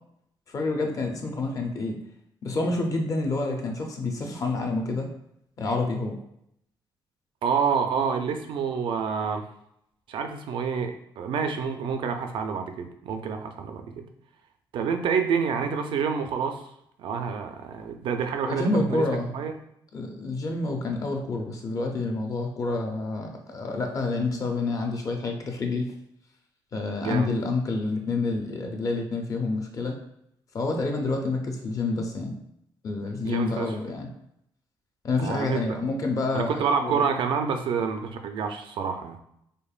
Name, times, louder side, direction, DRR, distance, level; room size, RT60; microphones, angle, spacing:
voice 1, 0.5-2.0 2.4-5.1 5.6-6.2 18.4-19.3 19.9-25.9 26.7-30.0 30.5-32.3 32.8-34.1 35.0-37.0, left 3 dB, 40° left, 2 dB, 0.5 m, -28 dB
voice 2, 7.4-9.4 10.1-14.0 14.7-16.6 17.0-19.0 19.3-19.5 27.0-27.3 33.2-33.7 35.2-35.6 36.3-39.2, right 6 dB, 70° right, 6 dB, 0.4 m, -28 dB
5.1 x 2.1 x 2.4 m, 0.76 s
cardioid pair, 135°, 9 cm